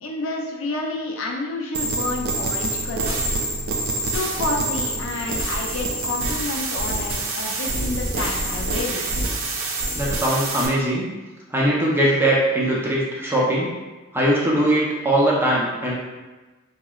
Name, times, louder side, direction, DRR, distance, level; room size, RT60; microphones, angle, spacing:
voice 1, 0.0-3.2 4.0-9.2, left 2 dB, 70° left, 0 dB, 0.5 m, -29 dB
sound 1, 1.7-10.7, right 2 dB, 65° right, 0.5 m, -26 dB
voice 2, 9.9-11.1 11.5-13.7 14.1-15.9, right 1 dB, 10° right, -5 dB, 0.6 m, -20 dB
3.0 x 2.9 x 2.3 m, 1.2 s
head